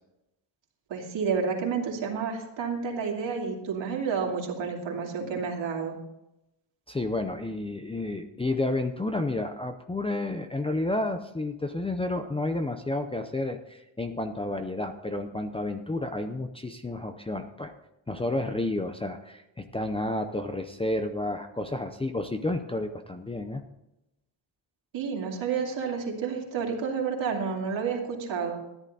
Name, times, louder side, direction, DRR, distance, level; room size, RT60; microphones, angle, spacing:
voice 1, 0.9-5.9 24.9-28.6, right 5 dB, 65° right, 0 dB, 2.9 m, -30 dB
voice 2, 6.9-17.7 18.1-23.6, left 2 dB, 10° left, 4 dB, 0.5 m, -31 dB
13.5 x 11.0 x 4.0 m, 0.88 s
wide cardioid pair, 175°, 47 cm